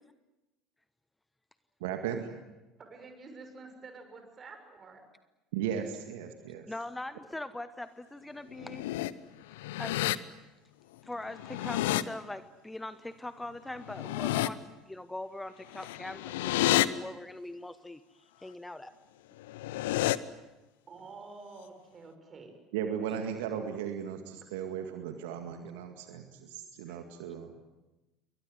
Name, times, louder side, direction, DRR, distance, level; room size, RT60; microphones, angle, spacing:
voice 1, 1.8-2.3 5.5-6.7 22.7-27.5, right 8 dB, 65° right, 6 dB, 2.1 m, -36 dB
voice 2, 2.8-5.0 20.9-22.5, right 4 dB, 30° right, 6 dB, 6.7 m, -49 dB
voice 3, 6.7-8.8 9.8-10.0 11.0-18.9 26.9-27.0, left 1 dB, 10° left, 13 dB, 1.0 m, -42 dB
sound 1, 8.5-9.1 9.5-10.1 11.3-12.0 13.8-14.5 15.7-16.9 19.4-20.2, left 16 dB, 65° left, 0.9 m, -29 dB
28.5 x 23.0 x 8.0 m, 1.1 s
figure-of-eight pair, 65°, 0 cm